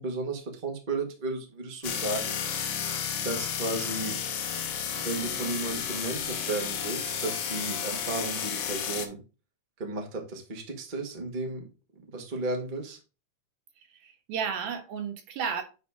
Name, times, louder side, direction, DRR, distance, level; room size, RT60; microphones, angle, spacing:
voice 1, 0.0-2.4 2.8-2.9 3.2-4.2 5.0-9.2 9.8-11.6 12.1-13.0, right 2 dB, 25° right, 1.0 m, -34 dB
sound 1, 1.8-9.1, left 8 dB, 65° left, 1.6 m, -32 dB
voice 2, 7.7-8.0 13.8-15.6, right 7 dB, 75° right, 2.8 m, -34 dB
9.4 x 4.2 x 3.6 m
omnidirectional pair, 3.7 m